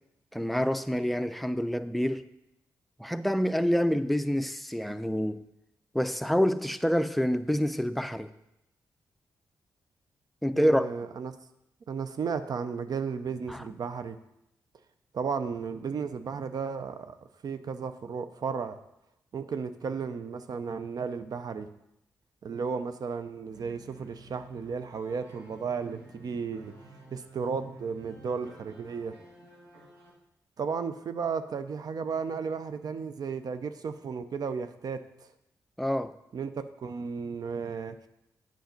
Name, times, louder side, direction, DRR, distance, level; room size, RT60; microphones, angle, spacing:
voice 1, 0.3-2.3 3.0-5.4 5.9-8.3 10.4-10.9 13.5-13.6 35.8-36.1, equal, ahead, 0.5 m, -27 dB
voice 2, 10.5-11.3 11.9-14.2 15.1-17.1 17.4-18.8 19.3-21.7 22.4-26.7 27.1-29.1 30.6-35.3 36.3-36.5 36.8-38.1, right 5 dB, 60° right, 0.5 m, -34 dB
sound 1, 23.3-30.1, right 2 dB, 80° right, 2.5 m, -52 dB
7.9 x 5.2 x 5.2 m
supercardioid pair, 50°, 7 cm